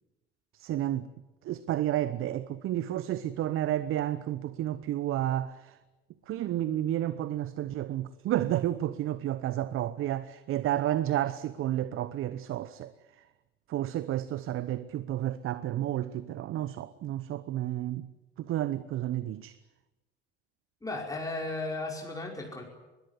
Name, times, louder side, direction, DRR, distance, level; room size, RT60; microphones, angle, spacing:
voice 1, 0.6-1.1 1.4-5.8 6.3-12.9 13.7-18.1 18.4-19.6, right 12 dB, 45° right, 1.0 m, -31 dB
voice 2, 20.8-22.6, left 2 dB, 10° left, 5.4 m, -35 dB
22.0 x 20.5 x 9.8 m
figure-of-eight pair, 60°, 29 cm